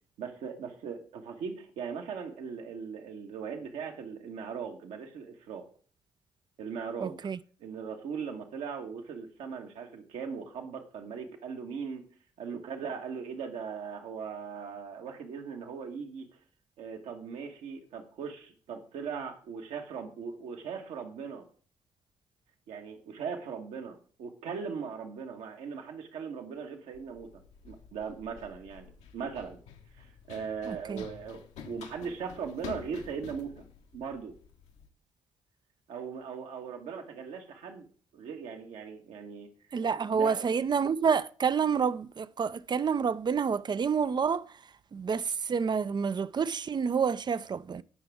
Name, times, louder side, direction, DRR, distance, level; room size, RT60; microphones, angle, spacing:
voice 1, 0.2-5.6 6.6-7.2 7.6-12.0 12.4-16.4 16.8-21.5 22.7-27.3 27.6-29.6 30.0-33.5 33.9-34.3 35.9-37.8 38.1-39.5 40.1-40.5, right 6 dB, 70° right, 1.6 m, -39 dB
voice 2, 7.0-7.4 30.7-31.1 39.7-44.6 44.9-47.8, right 6 dB, 40° right, 0.5 m, -28 dB
Run, 26.9-34.9, left 7 dB, 70° left, 1.2 m, -49 dB
17.5 x 5.9 x 3.6 m
hypercardioid pair, 45°, 12 cm